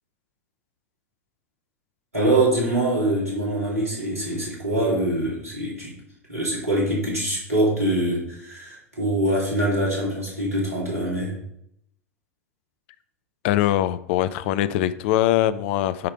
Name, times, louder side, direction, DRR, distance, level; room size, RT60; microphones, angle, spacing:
voice 1, 2.1-5.9 6.3-11.4, right 1 dB, 85° right, -5 dB, 2.7 m, -24 dB
voice 2, 13.4-16.1, left 13 dB, 55° left, 14 dB, 0.5 m, -22 dB
9.5 x 3.3 x 4.6 m, 0.73 s
figure-of-eight pair, 80°, 8 cm